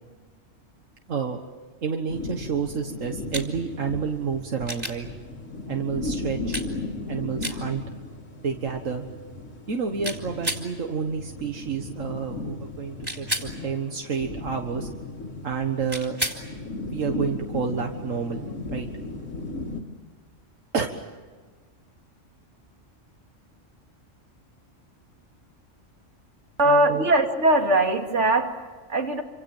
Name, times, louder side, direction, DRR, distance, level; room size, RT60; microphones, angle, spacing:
voice 1, 1.1-1.4 1.8-5.1 5.7-6.6 7.1-7.8 8.3-9.1 9.7-14.9 15.4-16.2 16.9-18.9 20.7-20.9 26.6-27.1, right 6 dB, 80° right, 4 dB, 1.9 m, -29 dB
sound 1, 2.1-19.8, left 2 dB, 75° left, 2.5 m, -36 dB
sound 2, 3.3-3.5 4.7-5.0 6.5-6.7 7.4-7.6 10.0-10.7 13.0-13.5 15.9-16.4 18.7-18.8, right 1 dB, 20° right, 3.5 m, -30 dB
voice 2, 26.6-29.2, right 1 dB, 65° right, 4 dB, 2.8 m, -21 dB
28.0 x 26.0 x 7.3 m, 1.4 s
omnidirectional pair, 1.3 m